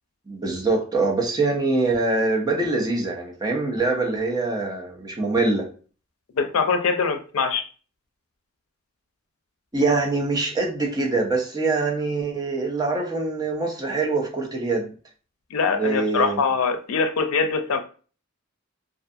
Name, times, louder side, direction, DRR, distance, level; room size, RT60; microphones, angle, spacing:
voice 1, 0.3-5.7 9.7-14.9 15.8-16.4, right 3 dB, 20° right, 0 dB, 0.5 m, -24 dB
voice 2, 6.3-7.7 15.5-17.8, left 5 dB, 90° left, 7 dB, 0.4 m, -23 dB
2.4 x 2.3 x 2.6 m, 0.39 s
head